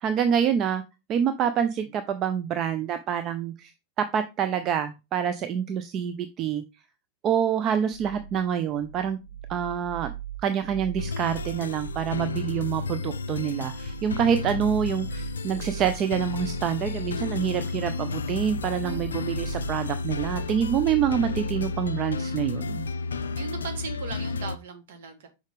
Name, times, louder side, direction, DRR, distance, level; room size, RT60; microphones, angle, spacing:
voice 1, 0.0-0.8 1.1-3.7 4.0-6.6 7.2-9.2 9.5-10.1 10.4-22.8, right 8 dB, 35° right, 10 dB, 0.5 m, -26 dB
sound 1, 7.9-22.9, right 11 dB, 75° right, 0.8 m, -41 dB
sound 2, 11.0-24.6, left 4 dB, 70° left, 0.3 m, -32 dB
voice 2, 18.8-19.2 23.3-25.3, right 5 dB, 55° right, 6 dB, 1.5 m, -38 dB
6.4 x 4.8 x 3.5 m, 0.27 s
figure-of-eight pair, 90°, 0 cm